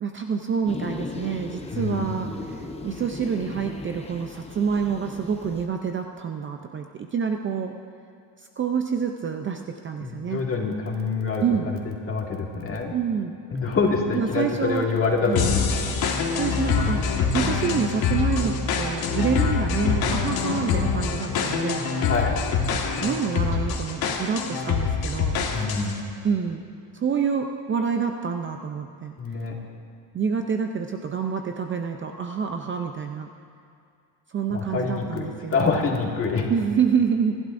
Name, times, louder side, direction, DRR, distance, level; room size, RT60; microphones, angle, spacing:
voice 1, 0.0-7.7 8.4-10.4 11.4-11.7 12.9-13.3 14.1-14.9 15.3-15.6 16.3-17.0 17.3-21.9 23.0-25.4 26.2-26.6 26.9-29.1 30.1-33.3 34.3-35.6 36.5-37.4, right 6 dB, 30° right, 4 dB, 0.5 m, -27 dB
sound 1, 0.7-5.7, left 3 dB, 15° left, 0.7 m, -37 dB
voice 2, 1.7-2.1 10.0-12.9 13.5-15.6 22.1-22.4 25.5-26.0 29.2-29.6 34.5-36.5, left 4 dB, 30° left, -1 dB, 2.1 m, -26 dB
sound 2, 15.4-26.0, left 5 dB, 60° left, 1.7 m, -25 dB
26.5 x 11.5 x 2.6 m, 2.3 s
cardioid pair, 135°, 41 cm